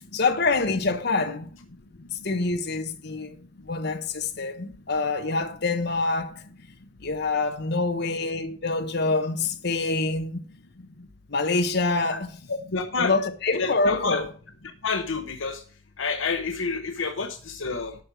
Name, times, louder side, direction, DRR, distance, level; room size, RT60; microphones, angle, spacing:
voice 1, 0.1-1.7 2.1-3.4 3.6-6.4 7.0-10.4 11.3-12.4 13.0-14.3, left 3 dB, 55° left, 1.2 m, -26 dB
voice 2, 12.7-13.1 13.6-14.2 14.8-15.6 16.0-17.9, left 4 dB, 75° left, 0.9 m, -28 dB
12.0 x 4.8 x 6.1 m
head